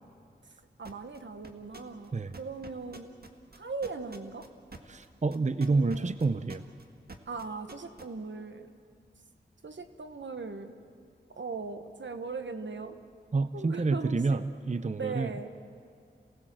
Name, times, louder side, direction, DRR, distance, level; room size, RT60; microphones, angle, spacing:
sound 1, 0.8-1.2 1.4-2.1 2.3-8.0, right 3 dB, 55° right, 1.7 m, -47 dB
voice 1, 0.8-3.1 3.5-4.5 5.6-6.1 7.3-8.7 9.6-10.8 11.4-13.0 13.5-14.4 15.0-15.5, right 4 dB, 80° right, 8 dB, 1.3 m, -39 dB
voice 2, 4.9-6.6 13.3-15.5, right 3 dB, 40° right, 12 dB, 0.6 m, -29 dB
28.0 x 18.0 x 7.6 m, 2.3 s
wide cardioid pair, 65°, 19 cm